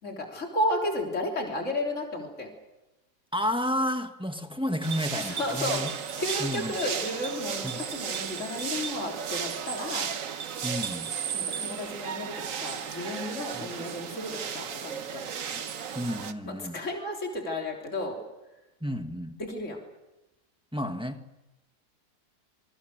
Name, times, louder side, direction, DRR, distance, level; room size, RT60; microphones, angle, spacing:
voice 1, 0.0-2.5 5.1-5.8 6.2-10.1 11.3-15.3 16.4-18.2 19.4-19.8, left 1 dB, 45° left, 1 dB, 3.8 m, -33 dB
voice 2, 3.3-5.9 6.4-6.8 7.6-7.8 10.6-11.1 13.5-13.7 15.5-15.6 15.9-16.8 18.8-19.4 20.7-21.4, equal, 5° right, 6 dB, 1.3 m, -31 dB
sound 1, 4.8-16.3, right 7 dB, 55° right, 1.3 m, -34 dB
26.5 x 22.0 x 6.6 m, 0.98 s
omnidirectional pair, 1.7 m